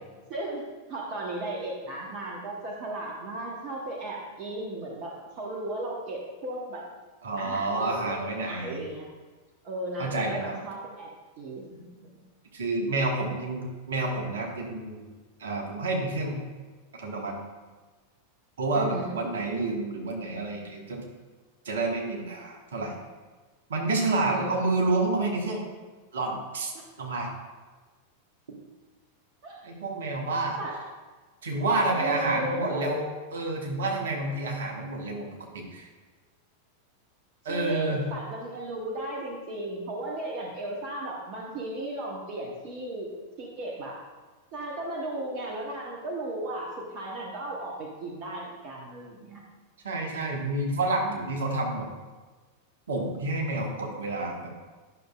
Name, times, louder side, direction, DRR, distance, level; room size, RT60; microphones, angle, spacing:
voice 1, 0.3-6.8 7.4-9.1 9.6-11.1 11.4-12.2 18.7-19.3 24.2-24.9 26.7-26.9 29.4-29.7 30.6-30.8 31.7-33.0 37.5-43.1 43.4-44.0 44.5-49.4, right 1 dB, 45° right, -1 dB, 1.1 m, -35 dB
voice 2, 7.2-8.8 10.0-10.5 12.5-15.1 15.4-16.4 16.9-17.4 18.6-21.0 21.6-22.9 23.7-25.6 26.1-26.7 27.0-27.3 29.6-30.6 31.4-35.3 35.5-35.9 37.4-38.1 49.8-51.9 52.9-54.5, right 2 dB, 65° right, 0 dB, 1.3 m, -29 dB
10.5 x 6.3 x 2.4 m, 1.3 s
figure-of-eight pair, 90°, 0 cm